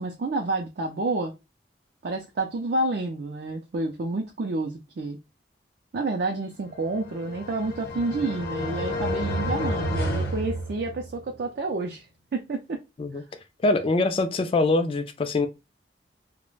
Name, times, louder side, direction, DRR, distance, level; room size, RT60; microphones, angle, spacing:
voice 1, 0.0-1.3 2.0-5.2 5.9-12.1 12.3-12.8 13.2-13.3, right 2 dB, 60° right, 0.4 m, -29 dB
sound 1, 6.9-11.3, equal, 60° left, 0.8 m, -30 dB
voice 2, 13.6-15.5, left 2 dB, 30° left, 0.3 m, -23 dB
2.3 x 2.1 x 3.1 m
head